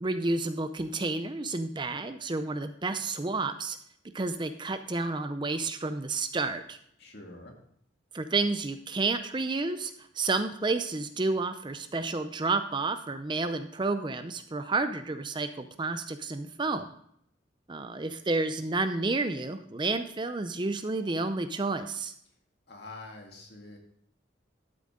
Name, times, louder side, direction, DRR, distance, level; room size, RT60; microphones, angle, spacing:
voice 1, 0.0-3.8 4.1-6.8 8.1-16.9 17.7-22.1, right 3 dB, 25° right, 9 dB, 0.5 m, -30 dB
voice 2, 7.0-7.5 22.7-23.8, left 2 dB, 60° left, 1 dB, 2.2 m, -46 dB
12.5 x 7.7 x 3.7 m, 0.69 s
head